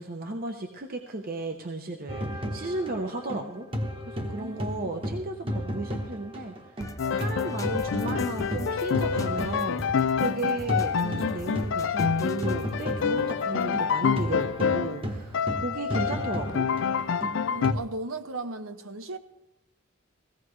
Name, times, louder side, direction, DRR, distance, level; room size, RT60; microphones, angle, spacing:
voice 1, 0.0-6.5 7.1-16.7, right 2 dB, 45° right, 0.8 m, -34 dB
sound 1, 2.1-6.9 7.2-17.8, equal, 25° right, 1.2 m, -33 dB
voice 2, 4.4-5.0 17.5-19.2, right 2 dB, 85° right, 1.0 m, -36 dB
sound 2, 6.8-14.6, left 2 dB, 15° left, 0.6 m, -41 dB
Piano, 7.0-15.0 15.3-17.7, left 6 dB, 60° left, 0.4 m, -27 dB
16.5 x 15.5 x 3.2 m
head